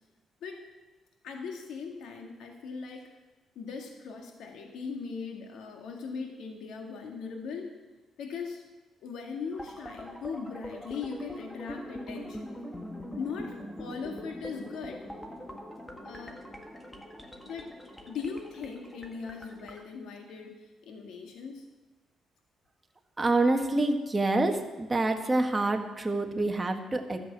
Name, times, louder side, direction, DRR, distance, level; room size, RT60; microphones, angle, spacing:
voice 1, 1.2-3.1 3.6-7.7 8.2-8.6 9.0-12.5 13.2-15.1 16.0-16.4 17.4-17.7 18.1-21.7, left 5 dB, 75° left, 2 dB, 2.0 m, -39 dB
sound 1, 9.5-19.8, equal, 10° left, 1.6 m, -43 dB
voice 2, 23.2-27.2, right 2 dB, 20° right, 4 dB, 1.6 m, -27 dB
13.0 x 8.0 x 7.5 m, 1.2 s
cardioid pair, 90°, 0 cm